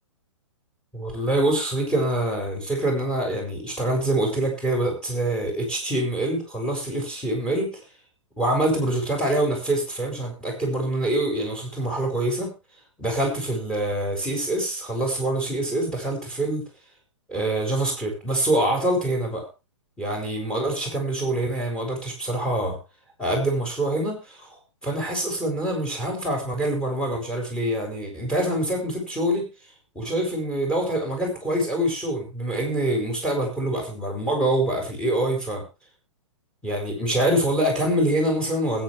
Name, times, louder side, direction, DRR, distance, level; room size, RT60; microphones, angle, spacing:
voice 1, 0.9-7.8 8.4-12.5 13.0-16.6 17.3-19.5 20.0-22.8 23.2-24.5 24.8-29.4 29.9-35.6 36.6-38.8, right 1 dB, 5° left, 1 dB, 6.8 m, -25 dB
20.5 x 9.4 x 3.3 m, 0.29 s
figure-of-eight pair, 120°, 16 cm